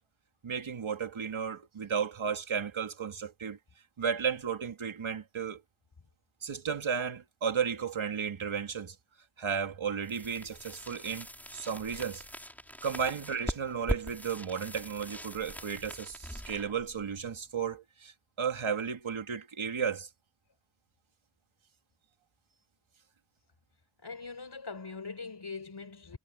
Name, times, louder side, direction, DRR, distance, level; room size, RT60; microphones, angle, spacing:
voice 1, 0.4-3.6 4.0-5.6 6.4-9.0 9.4-11.3 11.5-12.2 12.8-20.1, right 6 dB, 80° right, 2.8 m, -34 dB
sound 1, 10.0-17.8, equal, 5° left, 4.5 m, -41 dB
voice 2, 24.0-26.2, left 4 dB, 60° left, 6.4 m, -42 dB
cardioid pair, 50°, 47 cm